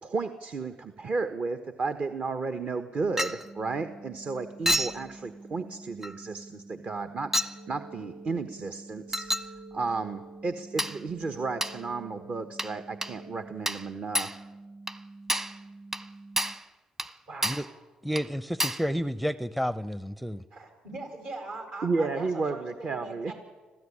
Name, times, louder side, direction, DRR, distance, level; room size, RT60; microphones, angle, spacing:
voice 1, 0.0-9.3 9.7-14.3 21.8-23.3, right 4 dB, 45° right, 8 dB, 1.3 m, -33 dB
Chink clink, 3.2-3.5 4.7-5.0 6.0-6.2 7.3-7.6 9.1-9.5 10.8-11.0 11.6-11.8 12.6-12.8 13.0-13.2 13.7-13.9 14.1-14.4 14.9-15.0 15.3-15.6 15.9-16.1 16.4-16.6 17.0-17.1 17.4-17.7 18.2-18.3 18.6-18.9, equal, 15° right, 1.1 m, -29 dB
sound 1, 3.4-16.6, right 2 dB, 30° right, 2.9 m, -48 dB
sound 2, 7.5-13.5, right 2 dB, 85° right, 5.6 m, -52 dB
voice 2, 17.3-17.7 20.5-23.3, right 2 dB, 70° right, 3 dB, 7.6 m, -41 dB
voice 3, 18.0-20.4, equal, ahead, 16 dB, 0.6 m, -30 dB
25.5 x 15.5 x 10.0 m, 1.4 s
supercardioid pair, 65°, 3 cm